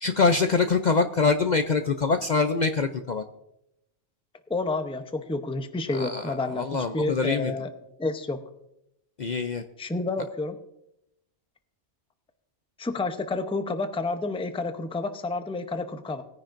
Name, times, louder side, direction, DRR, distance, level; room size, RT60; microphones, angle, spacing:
voice 1, 0.0-3.2 5.9-7.5 9.2-9.6, left 4 dB, 50° left, 7 dB, 0.6 m, -24 dB
voice 2, 4.5-7.7 8.0-8.4 9.8-10.6 12.8-16.2, left 3 dB, 5° left, 8 dB, 0.6 m, -29 dB
19.5 x 10.0 x 2.6 m, 0.82 s
omnidirectional pair, 1.2 m